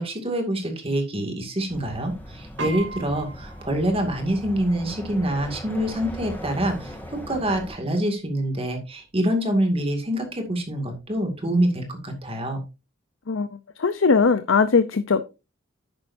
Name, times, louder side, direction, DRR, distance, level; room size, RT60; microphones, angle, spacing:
voice 1, 0.0-7.0 7.3-12.6, right 1 dB, 30° right, 2.2 m, -26 dB
sound 1, 1.7-7.7, equal, 10° left, 2.7 m, -39 dB
Piano, 2.6-12.2, right 3 dB, 70° right, 4.8 m, -43 dB
voice 2, 13.3-15.3, left 5 dB, 85° left, 0.7 m, -20 dB
10.5 x 8.9 x 2.7 m
head